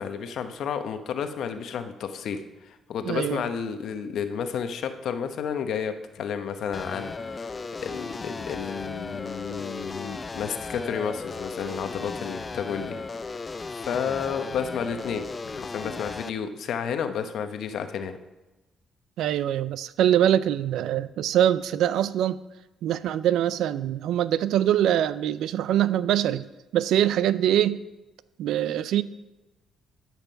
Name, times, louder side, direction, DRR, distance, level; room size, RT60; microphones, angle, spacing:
voice 1, 0.0-13.4 13.7-15.3 15.5-18.2, left 7 dB, 70° left, 8 dB, 0.9 m, -31 dB
voice 2, 3.1-3.4 19.2-22.4 22.8-26.4 26.7-27.8 28.4-29.0, right 11 dB, 85° right, 16 dB, 0.4 m, -23 dB
sound 1, 6.7-16.3, left 3 dB, 30° left, 0.4 m, -36 dB
12.5 x 5.9 x 5.7 m, 1.1 s
cardioid pair, 90°, 0 cm